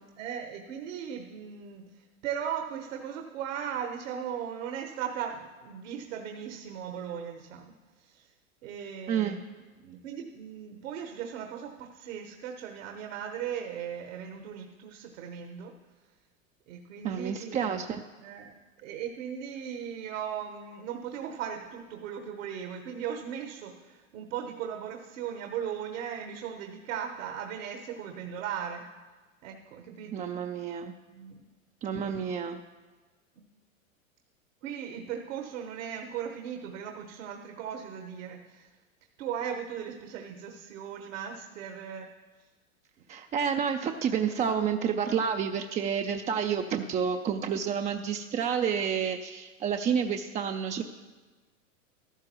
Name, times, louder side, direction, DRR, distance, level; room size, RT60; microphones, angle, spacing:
voice 1, 0.2-7.7 8.0-8.3 8.6-9.4 9.8-15.7 16.7-17.8 18.2-18.5 18.8-28.9 29.4-30.3 31.1-31.5 32.0-32.3 34.6-38.7 39.2-42.1, right 8 dB, 65° right, 4 dB, 1.2 m, -38 dB
voice 2, 17.0-18.0 30.1-30.9 31.8-32.6 43.1-50.8, right 7 dB, 20° right, 5 dB, 0.4 m, -29 dB
14.0 x 12.5 x 3.0 m, 1.3 s
hypercardioid pair, 100°, 40 cm